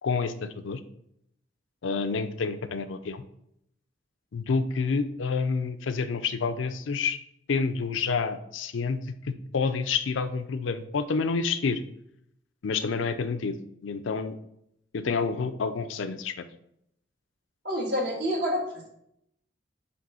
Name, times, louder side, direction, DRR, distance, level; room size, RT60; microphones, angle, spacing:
voice 1, 0.0-0.8 1.8-3.2 4.3-7.2 7.5-9.0 9.2-11.8 12.6-13.6 13.8-14.4 14.9-16.4, left 5 dB, 80° left, 10 dB, 0.5 m, -28 dB
voice 2, 17.6-18.9, equal, 60° right, -3 dB, 1.6 m, -28 dB
5.2 x 3.3 x 5.5 m, 0.75 s
head